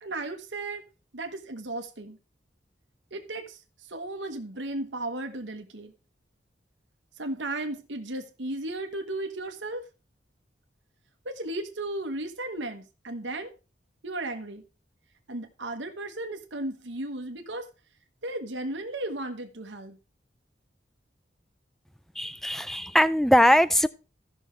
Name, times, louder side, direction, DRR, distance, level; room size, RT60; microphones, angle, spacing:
voice 1, 0.0-0.8 1.1-2.2 3.1-5.9 7.2-9.8 11.2-13.5 14.0-14.6 15.3-17.7 18.2-20.0, right 2 dB, 85° right, 1.3 m, -35 dB
voice 2, 22.2-23.9, equal, ahead, 0.4 m, -21 dB
16.0 x 6.3 x 3.3 m
head